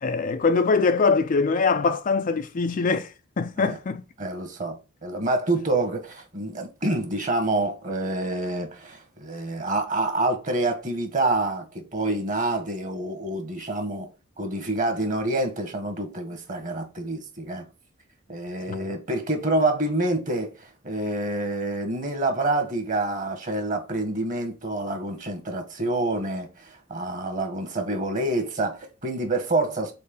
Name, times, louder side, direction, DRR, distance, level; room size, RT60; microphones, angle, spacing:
voice 1, 0.0-4.0 18.7-18.8, left 4 dB, 40° left, 0.4 m, -23 dB
voice 2, 4.2-14.1 14.4-17.6 18.3-29.9, right 2 dB, 40° right, 1.4 m, -27 dB
4.3 x 4.1 x 5.5 m
head